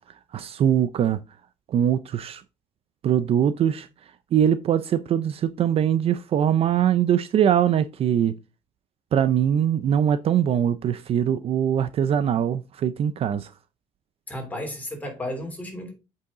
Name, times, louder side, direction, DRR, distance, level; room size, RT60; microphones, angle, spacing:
voice 1, 0.3-1.2 1.7-2.4 3.0-3.9 4.3-8.3 9.1-13.5, right 9 dB, 45° right, 0.5 m, -22 dB
voice 2, 14.3-15.9, left 1 dB, 10° left, 3.2 m, -33 dB
8.2 x 5.5 x 3.8 m
cardioid pair, 125°, 14 cm